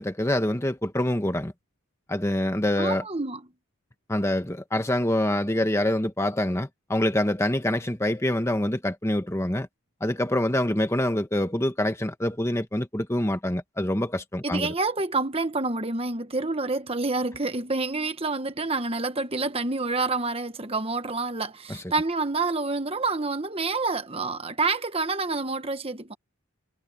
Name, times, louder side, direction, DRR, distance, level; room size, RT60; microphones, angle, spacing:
voice 1, 0.0-1.5 2.1-3.0 4.1-9.7 10.0-14.7 21.7-21.8, left 1 dB, 10° left, 1.2 m, -25 dB
voice 2, 2.8-3.4 14.4-26.2, right 3 dB, 25° right, 1.2 m, -28 dB
head